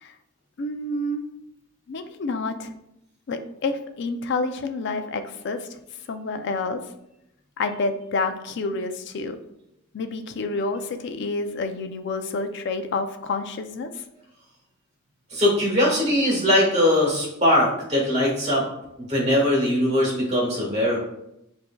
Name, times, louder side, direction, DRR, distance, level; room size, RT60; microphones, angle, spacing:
voice 1, 0.6-1.3 1.9-2.7 3.3-5.8 6.1-6.8 7.6-9.4 9.9-14.0, left 3 dB, 55° left, 8 dB, 0.4 m, -28 dB
voice 2, 15.3-18.6 19.0-21.0, left 1 dB, 30° right, -3 dB, 1.4 m, -21 dB
6.2 x 2.7 x 2.2 m, 0.82 s
head